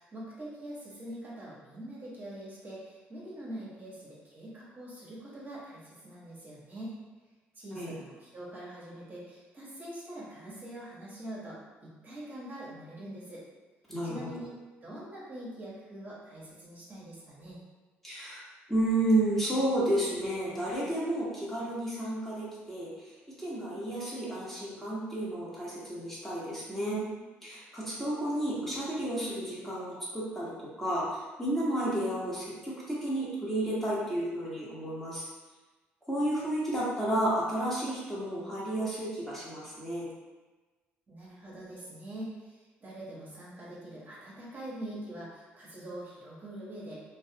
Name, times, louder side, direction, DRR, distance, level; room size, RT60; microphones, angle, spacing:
voice 1, 0.0-7.0 7.5-13.4 14.0-17.6 41.1-47.0, right 1 dB, 35° right, -7 dB, 0.9 m, -44 dB
voice 2, 13.9-14.3 18.0-18.4 18.7-22.9 23.4-27.1 27.4-31.1 31.4-35.2 36.1-40.1, right 1 dB, 5° left, -8 dB, 1.0 m, -31 dB
2.3 x 2.1 x 2.7 m, 1.3 s
hypercardioid pair, 60°, 5 cm